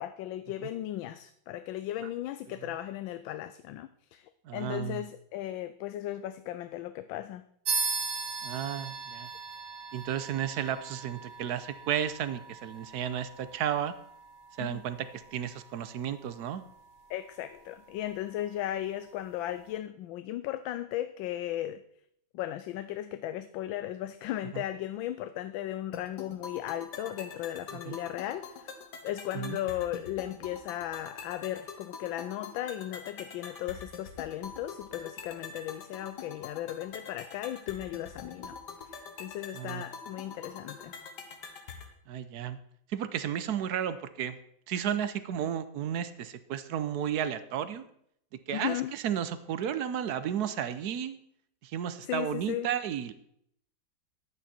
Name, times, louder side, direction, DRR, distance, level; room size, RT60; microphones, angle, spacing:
voice 1, 0.0-7.4 14.6-14.8 17.1-21.8 22.3-28.7 29.0-41.0 48.5-48.9 52.0-52.7, left 13 dB, 85° left, 12 dB, 1.3 m, -36 dB
voice 2, 4.4-5.1 8.4-9.3 9.9-13.9 14.6-16.6 24.5-24.6 27.7-28.0 29.3-29.6 39.5-39.8 42.1-42.6 42.9-44.4 44.7-47.9 48.5-51.2 51.6-53.1, right 9 dB, 65° right, 13 dB, 1.2 m, -33 dB
sound 1, 7.7-17.6, right 4 dB, 40° right, 1.6 m, -39 dB
sound 2, 25.9-41.9, left 5 dB, 65° left, 1.8 m, -45 dB
11.0 x 9.0 x 4.3 m, 0.70 s
omnidirectional pair, 2.1 m